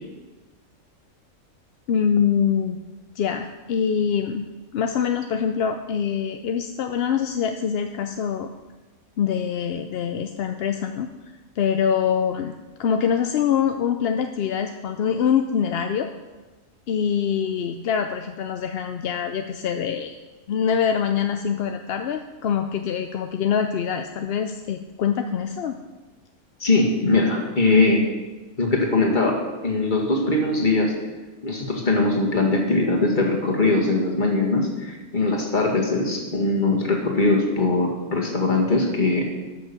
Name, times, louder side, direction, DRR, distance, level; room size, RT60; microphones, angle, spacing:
voice 1, 1.9-2.8 3.2-8.5 9.2-11.1 11.6-12.5 12.8-16.1 16.9-20.2 20.5-25.8, left 7 dB, 60° left, 6 dB, 0.7 m, -24 dB
voice 2, 26.6-28.0 28.6-29.4 29.6-30.9 31.4-39.3, left 2 dB, 35° left, 0 dB, 2.0 m, -21 dB
12.5 x 6.2 x 6.9 m, 1.2 s
omnidirectional pair, 1.4 m